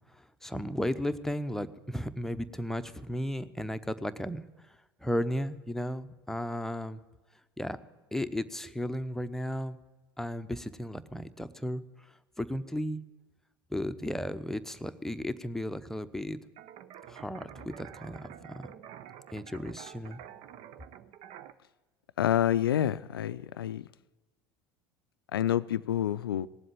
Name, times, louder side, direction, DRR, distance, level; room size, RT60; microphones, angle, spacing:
voice 1, 0.4-4.4 5.0-7.0 7.6-7.8 8.1-9.8 10.2-11.8 12.4-13.0 13.7-16.4 17.1-18.7 19.3-20.2, equal, 5° left, 0.9 m, -34 dB
sound 1, 16.6-21.5, right 10 dB, 55° right, 0.8 m, -48 dB
voice 2, 22.2-23.8 25.3-26.5, left 11 dB, 85° left, 0.4 m, -28 dB
18.5 x 7.8 x 9.5 m
hypercardioid pair, 75°, 12 cm